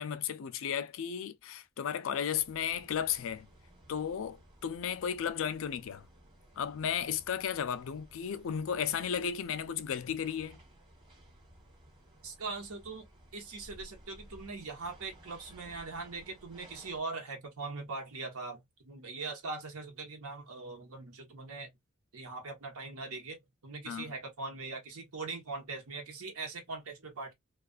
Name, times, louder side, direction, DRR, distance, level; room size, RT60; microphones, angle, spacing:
voice 1, 0.0-3.5 3.9-6.1 6.6-10.6 23.9-24.1, left 8 dB, 65° left, 0.4 m, -34 dB
sound 1, 2.3-17.0, right 1 dB, 25° right, 1.1 m, -57 dB
voice 2, 12.2-13.1 13.3-21.7 22.1-23.4 23.6-27.3, right 3 dB, 90° right, 1.0 m, -41 dB
2.4 x 2.3 x 2.3 m
head